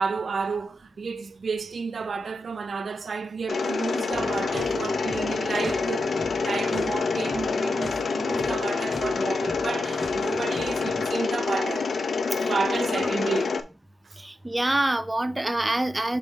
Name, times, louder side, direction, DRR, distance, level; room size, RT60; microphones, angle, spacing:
voice 1, 0.0-11.9 12.4-13.5 14.0-14.2, right 5 dB, 65° right, 0.4 m, -31 dB
Mechanisms, 3.5-13.6, left 4 dB, 80° left, 0.6 m, -27 dB
sound 1, 4.1-11.1, equal, 5° left, 3.6 m, -41 dB
voice 2, 12.8-13.1 14.2-16.2, right 1 dB, 15° right, 0.6 m, -26 dB
6.4 x 3.8 x 3.9 m
wide cardioid pair, 75°, 0 cm